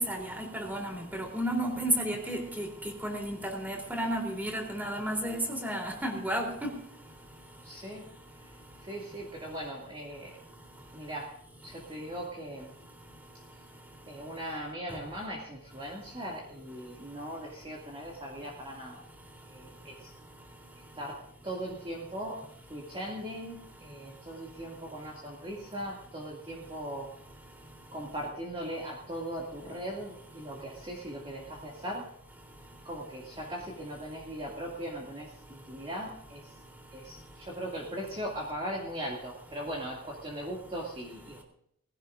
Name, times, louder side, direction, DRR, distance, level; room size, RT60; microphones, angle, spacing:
voice 1, 0.0-2.7 3.0-6.7, right 1 dB, 10° right, 2 dB, 3.5 m, -32 dB
voice 2, 7.6-8.1 8.8-10.4 10.9-12.7 14.1-19.1 19.5-20.1 21.0-27.1 27.9-32.1 32.8-36.5 36.9-41.4, equal, 25° right, -3 dB, 2.4 m, -39 dB
20.5 x 16.5 x 2.6 m, 0.72 s
head